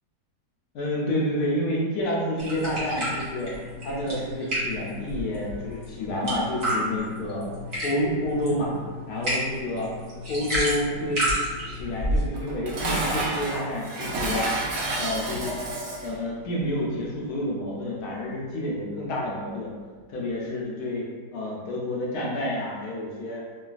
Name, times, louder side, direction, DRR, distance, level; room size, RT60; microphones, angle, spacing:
voice 1, 0.7-3.5 3.8-7.5 7.8-8.7 9.1-9.9 10.3-11.2 11.7-14.5 15.0-15.5 16.0-19.7 20.1-21.1 21.3-23.4, left 1 dB, 70° left, -3 dB, 1.0 m, -29 dB
sound 1, 2.4-12.3, equal, 45° right, 0.9 m, -31 dB
Dishes pots and pans, 12.3-16.2, right 1 dB, 70° right, 0.9 m, -29 dB
3.1 x 2.3 x 2.4 m, 1.4 s
omnidirectional pair, 1.9 m